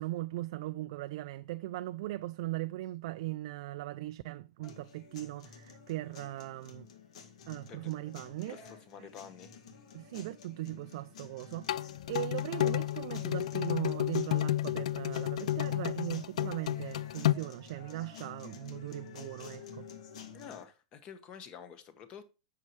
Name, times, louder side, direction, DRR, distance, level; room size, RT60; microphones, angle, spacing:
voice 1, 0.0-6.9 7.5-8.6 9.0-9.1 9.9-19.9, right 17 dB, 50° right, 0.3 m, -39 dB
sound 1, 4.6-20.6, left 6 dB, 70° left, 1.8 m, -51 dB
voice 2, 8.5-9.5 20.3-22.2, left 7 dB, 25° left, 1.1 m, -49 dB
sound 2, 11.7-17.3, left 13 dB, 85° left, 0.3 m, -31 dB
8.5 x 6.6 x 3.0 m
supercardioid pair, 170°, 4 cm